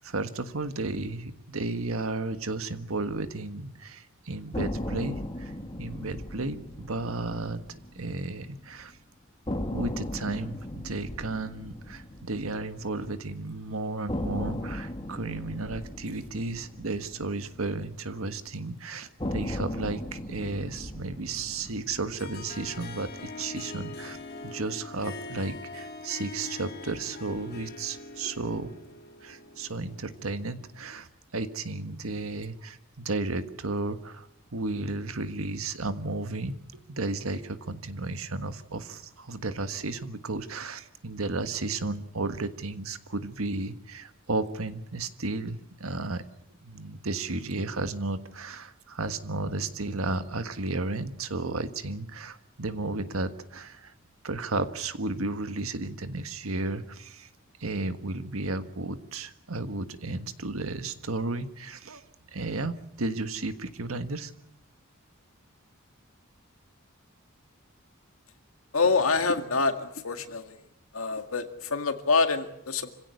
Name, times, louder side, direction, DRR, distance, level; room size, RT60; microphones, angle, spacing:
voice 1, 0.0-5.5 5.8-7.6 7.9-9.0 9.7-24.2 24.4-28.9 29.2-34.3 34.5-46.2 46.6-53.9 54.2-57.3 57.6-62.0 62.3-64.3, right 3 dB, 90° right, 10 dB, 1.5 m, -33 dB
sound 1, 4.5-8.6 8.9-9.0 9.5-13.5 14.1-18.4 19.2-23.6, left 1 dB, 25° left, 1.8 m, -37 dB
Harp, 22.2-30.6, left 3 dB, 50° left, 2.4 m, -43 dB
voice 2, 68.7-70.6 70.9-72.9, left 4 dB, 80° left, 7 dB, 2.0 m, -26 dB
26.0 x 16.5 x 8.2 m, 0.82 s
head